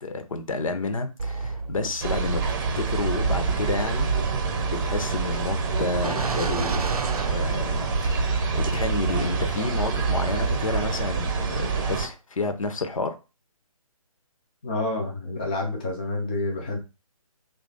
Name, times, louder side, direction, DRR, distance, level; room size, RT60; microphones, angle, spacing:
voice 1, 0.0-4.1 4.6-6.8 7.3-13.1, left 3 dB, 65° left, 0.7 m, -30 dB
sound 1, 1.2-8.1, right 4 dB, 85° right, 0.5 m, -34 dB
sound 2, 2.0-12.1, right 5 dB, 35° right, 0.7 m, -26 dB
voice 2, 14.6-16.8, left 2 dB, 15° left, 0.3 m, -28 dB
2.9 x 2.4 x 3.8 m
figure-of-eight pair, 145°, 18 cm